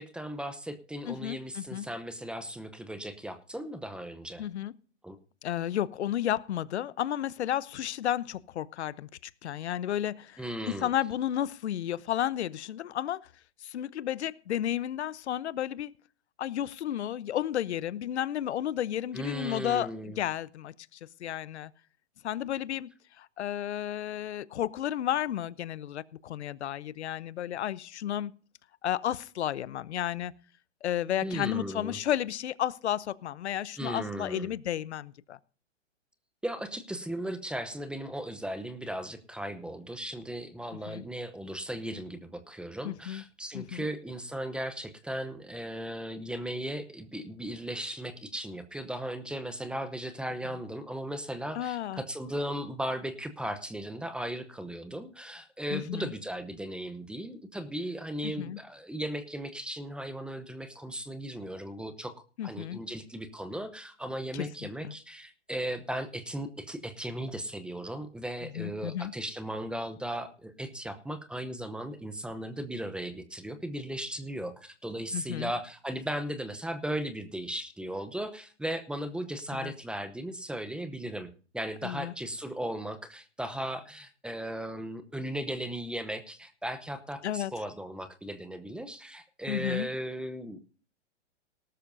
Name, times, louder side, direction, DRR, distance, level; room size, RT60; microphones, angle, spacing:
voice 1, 0.0-4.4 5.0-5.2 10.4-10.9 19.1-20.2 31.2-32.0 33.8-34.5 36.4-62.1 62.4-90.6, right 1 dB, 5° right, 10 dB, 0.8 m, -37 dB
voice 2, 1.1-1.9 4.4-4.7 5.4-13.2 13.6-15.9 16.4-21.7 22.2-22.9 23.2-28.3 28.8-30.3 30.8-35.4 40.9-41.0 42.8-43.2 43.5-43.8 51.5-52.0 55.7-56.1 58.2-58.6 62.4-62.8 64.3-64.9 68.4-69.1 75.1-75.5 79.5-79.7 81.8-82.1 87.2-87.5 89.5-89.9, left 11 dB, 65° left, 19 dB, 0.9 m, -32 dB
18.5 x 12.5 x 2.7 m, 0.40 s
hypercardioid pair, 135°, 36 cm